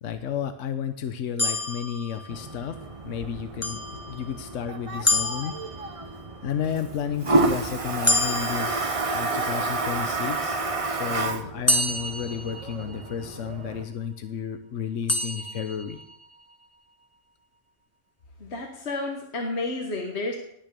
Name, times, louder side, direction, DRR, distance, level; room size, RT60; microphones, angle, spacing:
voice 1, 0.0-2.8 3.0-3.8 4.1-5.9 6.4-10.6 10.9-16.0, left 8 dB, 80° left, 9 dB, 1.2 m, -32 dB
sound 1, 1.4-2.7 3.6-4.5 5.0-6.3 8.0-9.5 11.7-13.2 15.1-16.2, left 2 dB, 15° left, 0.9 m, -28 dB
Toilet flush, 2.3-13.8, right 3 dB, 30° right, 1.0 m, -30 dB
voice 2, 18.4-20.4, left 2 dB, 60° left, 2 dB, 1.7 m, -31 dB
19.0 x 6.3 x 6.9 m, 0.71 s
omnidirectional pair, 1.3 m